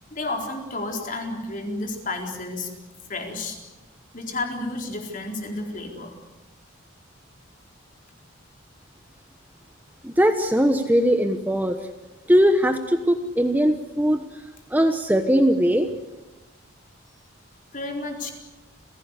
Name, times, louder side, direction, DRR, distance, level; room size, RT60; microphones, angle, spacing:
voice 1, 0.1-2.7 3.1-3.6 4.1-6.2 17.7-18.3, left 2 dB, 40° left, 2 dB, 4.3 m, -31 dB
voice 2, 10.0-11.8 12.3-14.2 14.7-15.9, equal, 10° right, 6 dB, 1.1 m, -20 dB
30.0 x 17.0 x 8.3 m, 1.1 s
head